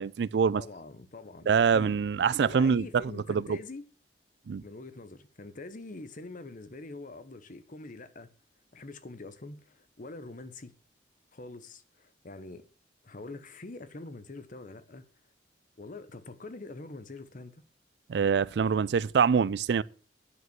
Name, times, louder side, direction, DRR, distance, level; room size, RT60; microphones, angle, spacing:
voice 1, 0.0-0.6 1.5-3.0 3.3-3.6 4.5-4.6 18.1-19.8, right 6 dB, 70° right, 0.4 m, -25 dB
voice 2, 0.6-1.5 1.7-1.9 2.2-3.8 4.6-8.3 8.7-10.7 11.3-12.7 13.0-15.1 15.8-17.6, left 2 dB, 50° left, 0.9 m, -44 dB
9.9 x 5.3 x 7.9 m
head